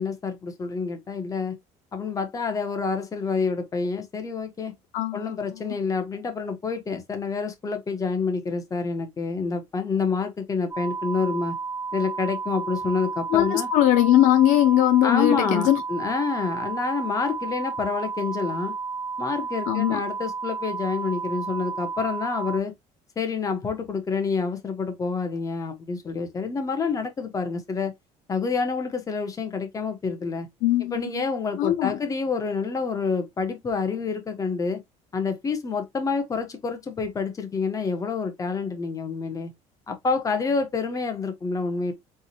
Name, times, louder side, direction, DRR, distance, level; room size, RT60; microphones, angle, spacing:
voice 1, 0.0-1.5 1.9-4.7 5.1-11.5 11.9-13.7 15.0-18.7 19.2-22.7 23.2-27.9 28.3-30.5 30.9-34.8 35.1-39.5 39.9-41.9, left 4 dB, 25° left, 1.2 m, -28 dB
voice 2, 4.9-5.8 13.3-15.8 19.7-20.0 30.6-31.2 31.6-32.0, left 14 dB, 70° left, 0.5 m, -21 dB
sound 1, 10.7-22.6, right 4 dB, 15° right, 0.9 m, -32 dB
3.9 x 3.6 x 2.9 m
cardioid pair, 130°, 14 cm